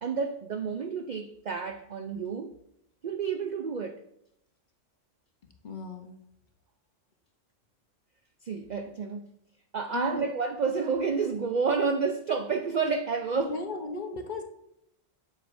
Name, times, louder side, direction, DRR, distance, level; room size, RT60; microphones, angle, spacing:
voice 1, 0.0-2.5 3.0-4.0 8.4-9.3 9.7-13.5, right 5 dB, 65° right, 0.4 m, -30 dB
voice 2, 5.6-6.1 9.9-10.3 13.5-14.4, left 3 dB, 45° left, 0.9 m, -36 dB
7.7 x 7.6 x 2.6 m
omnidirectional pair, 1.3 m